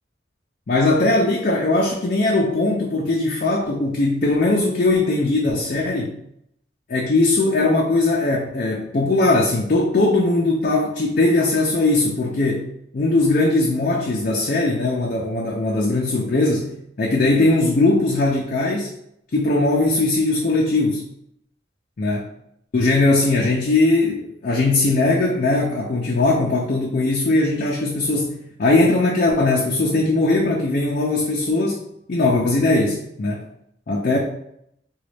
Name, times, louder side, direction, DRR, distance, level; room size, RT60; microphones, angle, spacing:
voice 1, 0.7-6.2 6.9-12.7 12.9-16.7 17.0-18.9 19.3-21.0 22.0-22.3 22.7-31.8 32.1-33.4 33.9-34.2, left 2 dB, 50° left, -2 dB, 0.4 m, -19 dB
3.8 x 2.3 x 3.3 m, 0.75 s
head